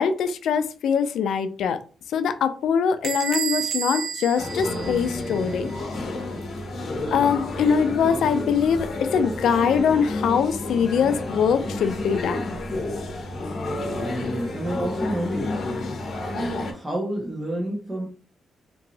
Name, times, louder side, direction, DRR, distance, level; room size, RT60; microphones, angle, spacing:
voice 1, 0.0-1.8 2.1-5.7 7.1-12.4, left 7 dB, 85° left, 10 dB, 0.3 m, -23 dB
Bell / Door, 3.0-5.5, right 8 dB, 55° right, 0.3 m, -30 dB
sound 1, 4.4-16.7, left 2 dB, 55° left, 0.8 m, -30 dB
voice 2, 14.2-15.6 16.7-18.1, right 1 dB, 10° right, -4 dB, 0.8 m, -29 dB
2.9 x 2.6 x 2.7 m, 0.38 s
cardioid pair, 130°, 0 cm